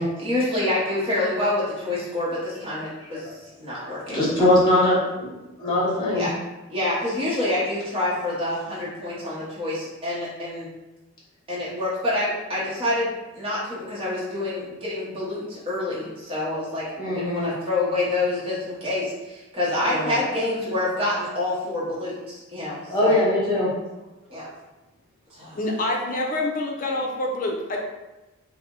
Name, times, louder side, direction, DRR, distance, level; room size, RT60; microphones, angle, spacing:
voice 1, 0.0-4.2 6.1-6.3 6.7-10.7 11.5-23.2 24.3-24.5 25.4-25.6, left 2 dB, 25° right, -9 dB, 0.9 m, -27 dB
voice 2, 4.1-5.3 5.6-6.3 17.0-17.5 19.9-20.2 22.9-23.7, left 1 dB, 20° left, -7 dB, 1.1 m, -21 dB
voice 3, 25.5-27.8, left 2 dB, 35° left, 0 dB, 0.5 m, -26 dB
4.1 x 2.1 x 3.7 m, 1.1 s
head